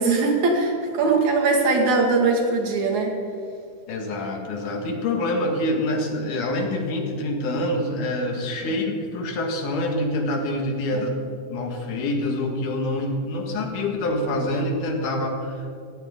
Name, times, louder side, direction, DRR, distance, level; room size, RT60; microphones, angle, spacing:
voice 1, 0.0-3.2 8.6-8.7, right 3 dB, 70° right, 1 dB, 3.4 m, -21 dB
voice 2, 3.9-11.1 11.5-15.8, left 1 dB, 85° left, 2 dB, 3.4 m, -26 dB
18.0 x 15.0 x 3.7 m, 2.4 s
omnidirectional pair, 3.5 m